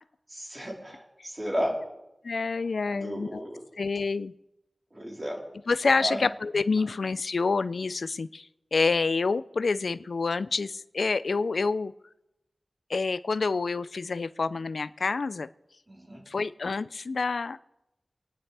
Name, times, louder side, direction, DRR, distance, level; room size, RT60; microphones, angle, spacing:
voice 1, 0.3-1.7 2.9-3.6 4.9-5.4 6.0-6.2 15.9-16.2, equal, 35° right, -3 dB, 3.9 m, -33 dB
voice 2, 2.2-3.4 3.8-4.3 5.7-11.9 12.9-15.5 16.3-17.6, left 4 dB, 85° left, 15 dB, 0.4 m, -28 dB
26.5 x 9.7 x 3.4 m, 0.93 s
wide cardioid pair, 55°, 0 cm